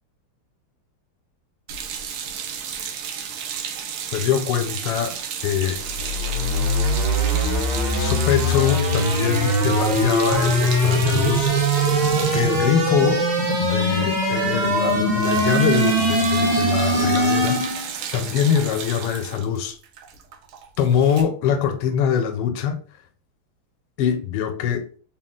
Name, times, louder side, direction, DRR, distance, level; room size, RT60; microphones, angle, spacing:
sound 1, 1.7-14.1 14.3-14.5 14.8-21.2, right 7 dB, 80° right, 1.4 m, -33 dB
voice 1, 4.1-5.1 5.4-5.8 8.0-11.5 12.3-13.3 13.6-17.8 18.1-19.8 20.8-22.8 24.0-24.9, left 8 dB, 85° left, 1.5 m, -23 dB
sound 2, 5.7-17.9, equal, 60° right, 1.6 m, -21 dB
3.8 x 2.3 x 3.6 m
omnidirectional pair, 2.3 m